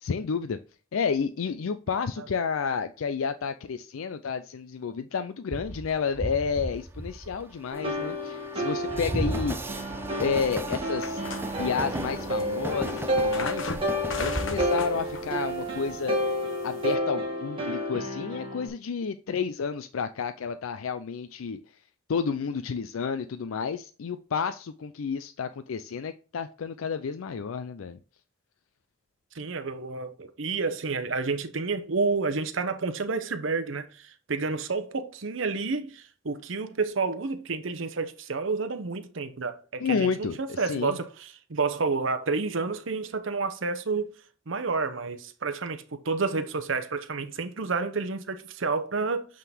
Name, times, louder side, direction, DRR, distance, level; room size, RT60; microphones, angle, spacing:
voice 1, 0.0-0.6 0.9-9.6 10.2-11.2 11.6-13.7 14.2-16.2 16.6-21.6 22.1-28.0 39.8-41.0, left 6 dB, 80° left, 0.4 m, -30 dB
Train, 5.5-15.9, right 1 dB, 10° right, 0.4 m, -35 dB
sound 1, 7.7-18.7, equal, 25° right, 1.8 m, -31 dB
sound 2, 11.0-16.9, left 3 dB, 65° left, 0.9 m, -39 dB
voice 2, 29.3-44.1 44.5-49.3, right 4 dB, 65° right, 0.8 m, -30 dB
8.3 x 3.8 x 3.5 m
head